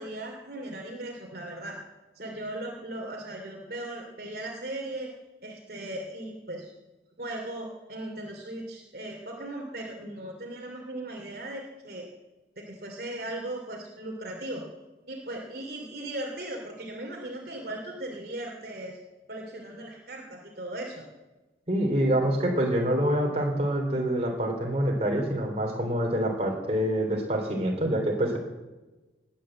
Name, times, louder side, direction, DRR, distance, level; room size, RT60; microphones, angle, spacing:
voice 1, 0.0-1.8 2.1-5.1 5.4-6.7 7.2-12.1 12.6-14.6 15.1-19.0 19.3-21.1, right 1 dB, 55° right, 0 dB, 2.8 m, -38 dB
voice 2, 21.7-28.4, right 1 dB, 35° right, 1 dB, 3.5 m, -26 dB
19.0 x 8.9 x 7.8 m, 1.1 s
head